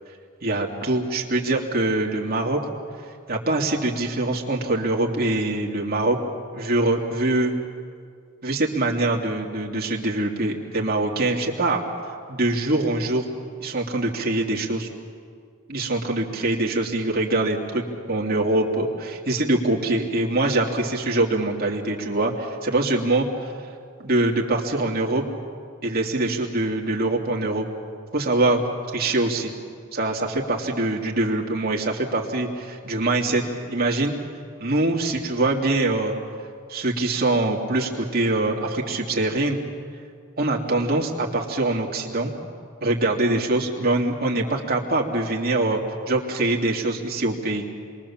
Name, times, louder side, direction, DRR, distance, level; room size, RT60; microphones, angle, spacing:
voice 1, 0.4-2.6 3.3-6.2 6.5-7.5 8.4-11.8 12.3-13.2 13.6-14.9 15.7-23.3 24.0-25.2 25.8-27.6 28.1-28.6 28.9-29.5 29.9-34.1 34.6-36.2 36.7-39.6 40.4-42.3 42.8-45.8 46.1-47.8, right 2 dB, 45° right, 0 dB, 2.8 m, -23 dB
28.0 x 22.5 x 7.4 m, 2.1 s
head